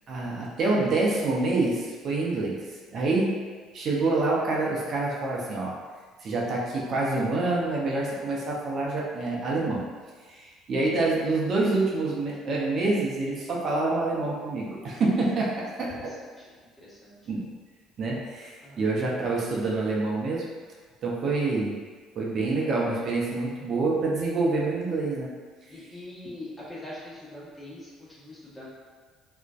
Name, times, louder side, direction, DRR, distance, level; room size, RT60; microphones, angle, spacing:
voice 1, 0.1-2.6 2.9-3.4 3.7-5.7 6.2-9.8 10.3-15.9 17.3-17.5 18.0-20.4 21.0-21.7 22.2-25.3, right 3 dB, 55° right, -4 dB, 0.5 m, -26 dB
voice 2, 15.9-17.4 18.6-18.9 25.7-28.7, left 1 dB, 20° left, -7 dB, 0.9 m, -43 dB
2.5 x 2.1 x 2.3 m, 1.5 s
hypercardioid pair, 65°, 0 cm